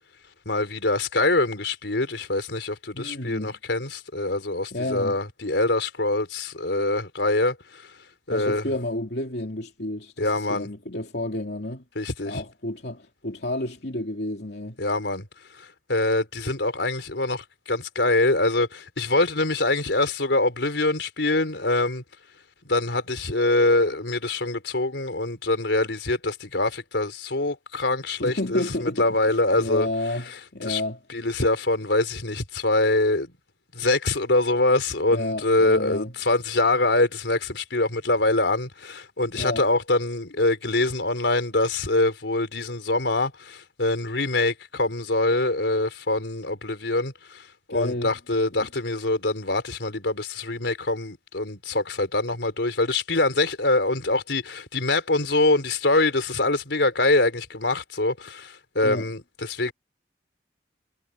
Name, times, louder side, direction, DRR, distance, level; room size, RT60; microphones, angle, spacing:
voice 1, 0.5-7.9 8.3-8.6 10.2-10.7 12.0-12.4 14.8-15.3 15.6-22.0 22.6-29.9 30.7-30.8 31.1-33.3 33.7-59.7, left 2 dB, 90° left, 4.0 m, -24 dB
voice 2, 2.9-3.5 4.7-5.2 8.3-11.8 12.2-14.8 28.2-31.0 35.1-36.1 39.4-39.7 47.7-48.1 58.8-59.1, left 1 dB, 70° left, 2.8 m, -31 dB
head